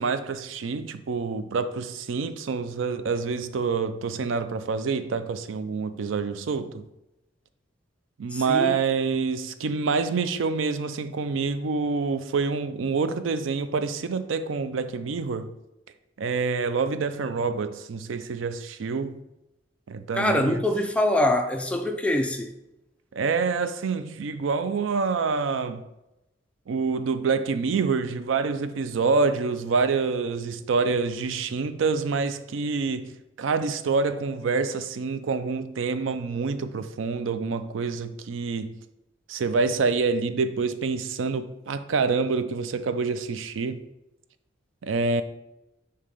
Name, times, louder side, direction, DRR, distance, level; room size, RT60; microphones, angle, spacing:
voice 1, 0.0-6.8 8.2-15.5 16.2-19.2 19.9-20.6 23.1-25.8 26.7-38.7 39.3-43.8 44.8-45.2, right 4 dB, 90° right, 0.4 m, -27 dB
voice 2, 8.3-8.8 20.1-22.5, left 1 dB, 5° left, 0.4 m, -24 dB
6.6 x 2.8 x 5.2 m
head